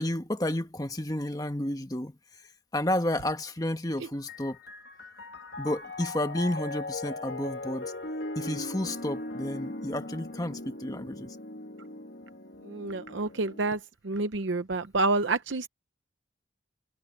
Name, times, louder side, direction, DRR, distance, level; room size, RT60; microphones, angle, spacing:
voice 1, 0.0-2.5 2.7-4.6 5.6-7.9 8.3-11.4, left 1 dB, 20° left, 1.4 m, -31 dB
Piano, 4.1-13.8, left 2 dB, 65° left, 2.1 m, -39 dB
voice 2, 12.6-15.7, right 3 dB, 85° right, 0.8 m, -29 dB
head